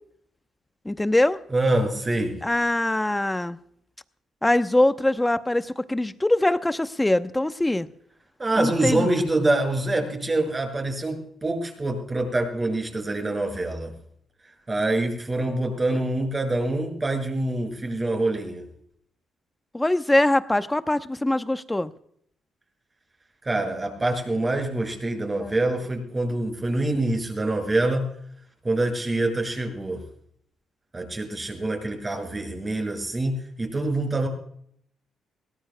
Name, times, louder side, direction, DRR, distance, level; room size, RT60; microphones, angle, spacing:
voice 1, 0.8-1.4 2.4-3.6 4.4-7.9 8.6-9.1 19.7-21.9 25.4-25.5, left 1 dB, 10° left, 11 dB, 0.8 m, -23 dB
voice 2, 1.5-2.4 8.4-13.9 14.7-18.7 23.4-28.1 28.6-30.0 30.9-34.3, right 2 dB, 25° right, 3 dB, 6.2 m, -25 dB
22.5 x 18.0 x 2.2 m, 0.67 s
cardioid pair, 90°, 0 cm